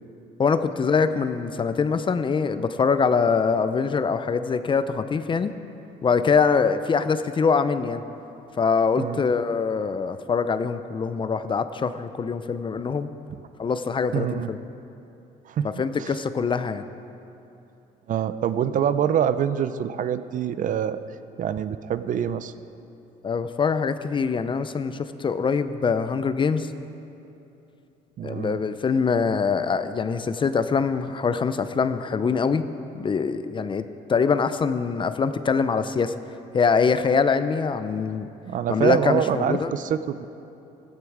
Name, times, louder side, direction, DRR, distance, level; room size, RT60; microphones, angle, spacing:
voice 1, 0.4-5.5 6.0-8.0 8.6-13.1 13.6-14.6 15.6-16.8 23.2-26.7 28.2-32.6 32.9-36.2 36.5-38.3 38.7-39.7, left 5 dB, 30° left, 11 dB, 0.6 m, -23 dB
voice 2, 14.1-14.5 15.5-15.7 16.0-16.1 18.1-21.0 21.4-22.5 28.2-28.6 38.5-40.3, right 9 dB, 50° right, 13 dB, 0.6 m, -25 dB
16.5 x 12.0 x 4.8 m, 2.8 s
cardioid pair, 110°, 17 cm